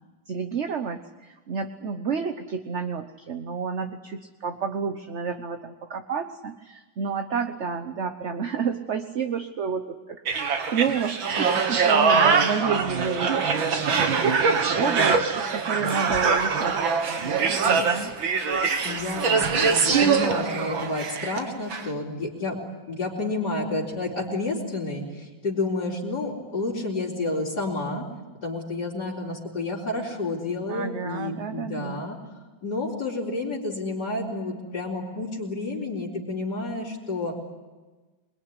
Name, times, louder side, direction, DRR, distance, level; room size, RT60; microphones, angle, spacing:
voice 1, 0.3-10.4 10.7-14.3 14.8-16.8 17.1-18.1 30.7-32.0, right 6 dB, 45° right, 7 dB, 1.2 m, -30 dB
sound 1, 10.3-21.4 21.7-21.9, right 5 dB, 90° right, 2.5 m, -23 dB
voice 2, 18.8-22.6 22.9-28.1 28.4-32.2 32.6-37.3, left 2 dB, 55° left, -6 dB, 4.4 m, -30 dB
27.5 x 21.5 x 9.9 m, 1.3 s
omnidirectional pair, 2.1 m